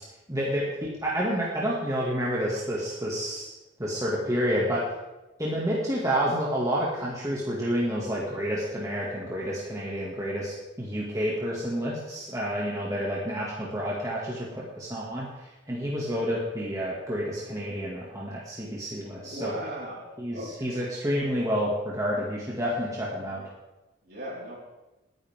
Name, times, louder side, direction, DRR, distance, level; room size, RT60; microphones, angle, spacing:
voice 1, 0.3-3.5 3.8-4.8 5.4-19.5 20.2-23.5, equal, 15° right, -5 dB, 2.2 m, -29 dB
voice 2, 19.2-20.8 24.0-24.6, equal, 50° right, -4 dB, 4.6 m, -38 dB
20.0 x 10.5 x 3.7 m, 1.0 s
head